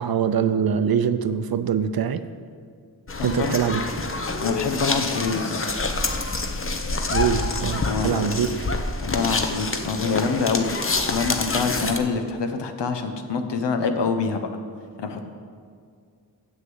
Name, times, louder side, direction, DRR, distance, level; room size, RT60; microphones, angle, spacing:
voice 1, 0.0-2.2 3.2-3.8 7.1-8.6 11.8-11.9, right 7 dB, 60° right, 11 dB, 0.6 m, -23 dB
sound 1, 3.1-12.0, left 3 dB, 30° left, 0.8 m, -27 dB
voice 2, 3.2-3.6 4.4-5.8 7.9-8.3 9.0-14.5 15.0-15.2, left 4 dB, 80° left, 7 dB, 0.9 m, -26 dB
7.4 x 6.6 x 7.7 m, 2.2 s
cardioid pair, 55°, 41 cm